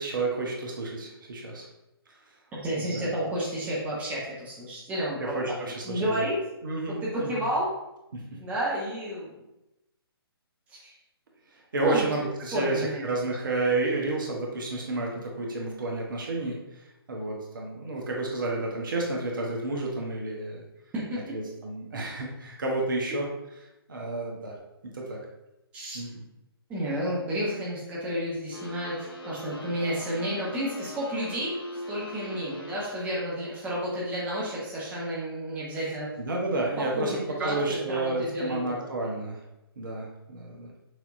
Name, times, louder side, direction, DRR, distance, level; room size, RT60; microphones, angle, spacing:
voice 1, 0.0-1.7 2.8-3.1 5.2-6.3 6.6-7.4 8.1-8.4 11.7-20.6 21.3-23.3 23.9-24.5 24.8-25.2 25.9-26.3 36.2-39.4 39.8-40.7, right 2 dB, 55° right, -1 dB, 1.0 m, -31 dB
voice 2, 2.5-5.3 5.8-6.4 6.9-7.7 8.4-9.4 10.7-10.8 11.8-12.0 12.5-13.0 20.9-21.4 25.7-26.0 26.7-31.6 31.9-36.1 36.8-38.9, equal, 10° right, -6 dB, 0.9 m, -31 dB
sound 1, 28.5-33.1, left 1 dB, 65° left, 1.0 m, -41 dB
6.1 x 2.8 x 2.6 m, 0.93 s
figure-of-eight pair, 135°, 13 cm